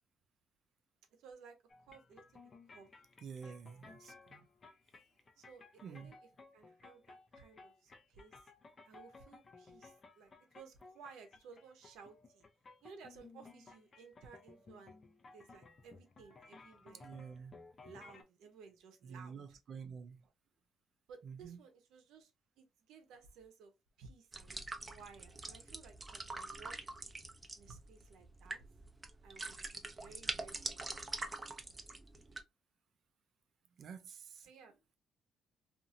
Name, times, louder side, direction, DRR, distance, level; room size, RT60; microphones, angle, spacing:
voice 1, 1.2-1.6 1.9-2.9 3.4-3.6 5.4-6.2 6.5-8.5 8.8-12.4 12.8-14.9 15.3-17.0 17.8-19.4 21.1-22.3 22.6-23.7 24.0-24.5 24.9-27.0 27.5-28.6 29.2-31.3 34.4-34.7, right 5 dB, 85° right, 0.8 m, -57 dB
sound 1, 1.7-18.2, left 3 dB, 40° left, 0.6 m, -59 dB
voice 2, 3.2-4.4 5.8-6.1 17.0-17.6 19.0-20.2 21.2-21.6 33.8-34.5, right 6 dB, 65° right, 0.5 m, -49 dB
sound 2, 24.3-32.4, right 2 dB, 25° right, 0.6 m, -44 dB
2.7 x 2.6 x 2.6 m
cardioid pair, 90°, 0 cm